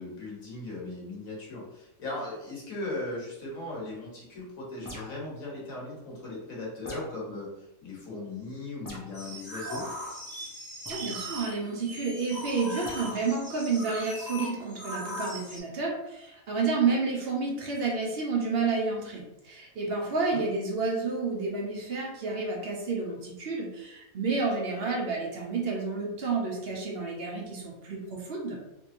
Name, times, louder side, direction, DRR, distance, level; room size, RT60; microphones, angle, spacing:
voice 1, 0.0-9.9 20.3-20.4, left 2 dB, 75° left, -4 dB, 1.5 m, -38 dB
sound 1, 4.8-5.3 6.8-7.2 8.9-9.2 10.9-11.1 12.8-13.1, left 1 dB, 30° left, 0.3 m, -42 dB
sound 2, 9.1-15.6, equal, 5° right, 1.0 m, -39 dB
voice 2, 10.9-28.6, right 4 dB, 50° right, -1 dB, 0.9 m, -30 dB
3.3 x 3.1 x 2.6 m, 0.88 s
omnidirectional pair, 1.5 m